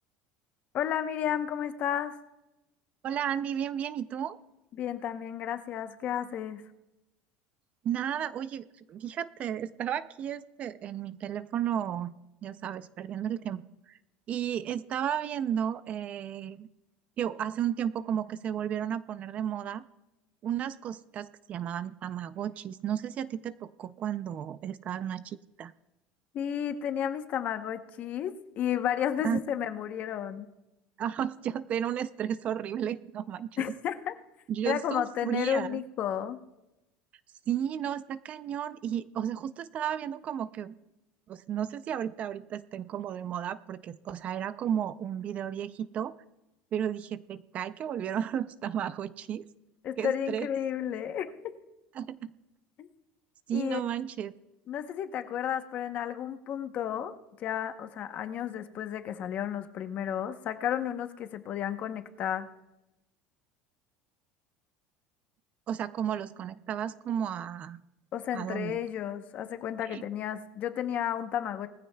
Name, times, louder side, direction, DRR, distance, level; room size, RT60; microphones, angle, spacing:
voice 1, 0.7-2.2 4.7-6.6 26.3-30.5 33.6-34.1 34.6-36.4 49.8-51.5 52.8-52.9 53.5-53.8 54.7-57.1 57.4-62.5 68.1-71.7, left 9 dB, 40° left, 9 dB, 0.8 m, -32 dB
voice 2, 3.0-4.4 7.8-12.1 12.4-14.0 14.3-16.7 17.2-19.9 20.4-25.7 29.2-29.4 31.0-33.7 34.5-35.8 37.5-40.7 41.3-46.1 46.7-49.5 50.0-50.5 51.9-52.2 53.5-54.3 65.7-67.8 68.3-68.8 69.9-70.0, right 9 dB, 35° right, 15 dB, 0.4 m, -33 dB
20.0 x 15.0 x 2.2 m, 0.95 s
cardioid pair, 155°, 4 cm